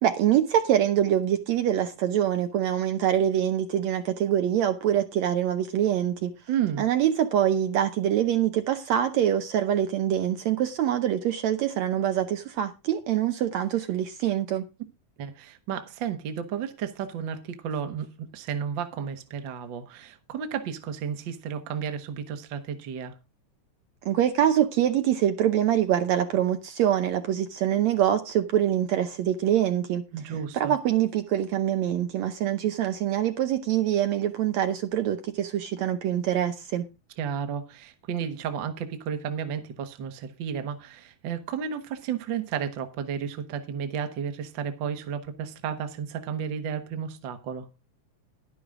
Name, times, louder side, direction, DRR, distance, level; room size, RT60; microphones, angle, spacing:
voice 1, 0.0-6.3 6.8-14.6 24.1-30.0 30.5-36.9, right 10 dB, 70° right, 1.8 m, -24 dB
voice 2, 6.5-6.8 15.2-23.1 30.1-30.7 37.2-47.7, right 7 dB, 55° right, 1.4 m, -32 dB
11.0 x 11.0 x 3.7 m
omnidirectional pair, 3.7 m